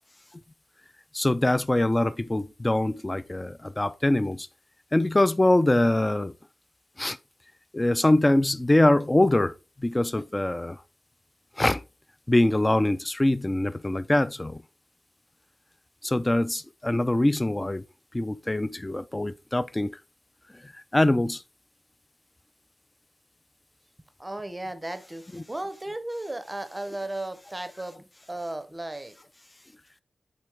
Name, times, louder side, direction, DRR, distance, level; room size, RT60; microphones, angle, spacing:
voice 1, 1.1-4.5 4.9-6.3 7.0-7.2 7.7-10.8 11.6-11.8 12.3-14.6 16.0-17.8 18.1-19.9 20.6-21.4 25.3-25.4, left 1 dB, 15° left, 0.3 m, -23 dB
voice 2, 24.2-25.2 25.5-29.2, right 1 dB, 15° right, 0.7 m, -35 dB
7.8 x 4.3 x 3.3 m
wide cardioid pair, 125°, 0 cm